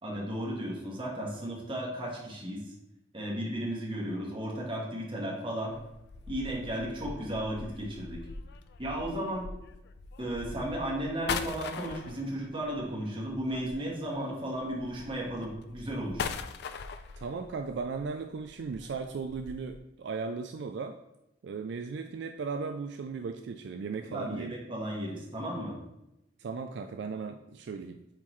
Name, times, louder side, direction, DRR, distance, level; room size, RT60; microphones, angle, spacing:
voice 1, 0.0-2.6 3.1-5.8 6.3-8.2 8.8-9.5 10.2-16.3 24.1-25.8, right 1 dB, 25° right, -3 dB, 1.4 m, -34 dB
sound 1, 5.7-14.2 14.5-19.8, left 5 dB, 60° left, 0.4 m, -42 dB
voice 2, 17.2-21.0 21.4-24.6 26.4-28.0, right 5 dB, 65° right, 6 dB, 0.3 m, -36 dB
8.4 x 3.7 x 3.1 m, 0.90 s
head